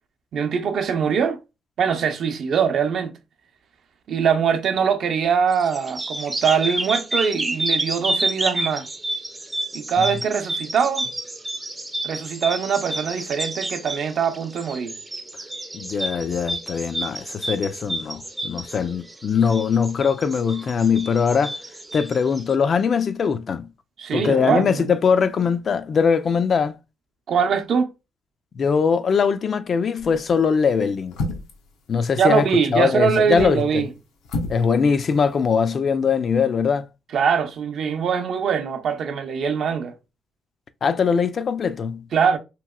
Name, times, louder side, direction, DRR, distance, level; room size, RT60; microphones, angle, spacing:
voice 1, 0.3-1.4 1.8-3.1 4.1-8.9 9.7-11.0 12.0-14.9 24.0-24.9 27.3-27.9 32.2-33.9 37.1-39.9 42.1-42.4, right 6 dB, 65° right, 0.5 m, -22 dB
sound 1, 5.5-22.5, right 1 dB, 15° right, 0.4 m, -29 dB
voice 2, 15.7-21.6 21.9-23.7 24.1-26.8 28.5-31.2 31.9-33.9 34.5-36.9 40.8-42.0, left 6 dB, 50° left, 0.3 m, -21 dB
sound 2, 30.0-30.3 31.1-31.7 33.1-33.6 34.2-34.7 34.9-35.0, left 2 dB, 85° left, 0.6 m, -29 dB
2.9 x 2.9 x 2.2 m
cardioid pair, 90°, 0 cm